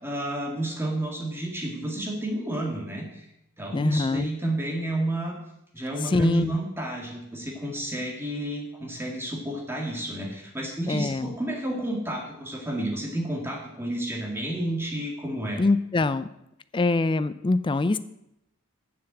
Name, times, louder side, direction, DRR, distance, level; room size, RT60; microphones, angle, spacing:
voice 1, 0.0-3.2 3.6-5.4 5.7-15.6, right 1 dB, 10° right, -1 dB, 1.9 m, -31 dB
voice 2, 3.7-4.3 6.0-6.6 10.9-11.3 15.6-16.3 16.7-18.0, left 3 dB, 25° left, 14 dB, 0.4 m, -24 dB
6.9 x 6.9 x 7.9 m, 0.83 s
head